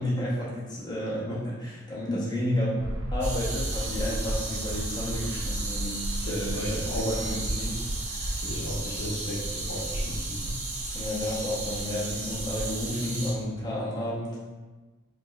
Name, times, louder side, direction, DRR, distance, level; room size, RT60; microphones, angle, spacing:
voice 1, 0.0-8.4 10.4-10.5 10.9-14.4, left 1 dB, 20° left, -7 dB, 0.6 m, -32 dB
sound 1, 2.8-12.9, right 1 dB, 85° right, 0.4 m, -34 dB
sound 2, 3.2-13.3, right 2 dB, 35° right, 0.6 m, -35 dB
voice 2, 6.3-7.1 8.4-10.4, equal, 65° left, -4 dB, 0.6 m, -34 dB
4.4 x 2.2 x 2.2 m, 1.3 s
head